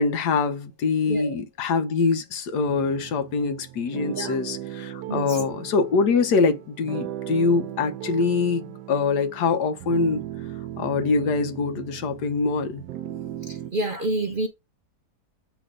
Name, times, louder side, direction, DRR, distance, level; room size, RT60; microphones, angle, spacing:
voice 1, 0.0-10.2 10.8-12.8, left 4 dB, 80° left, 1.5 m, -24 dB
sound 1, 2.7-13.7, right 12 dB, 80° right, 1.2 m, -37 dB
voice 2, 5.1-5.5 13.4-14.5, right 2 dB, 50° right, 0.6 m, -28 dB
8.1 x 3.5 x 3.7 m
omnidirectional pair, 1.8 m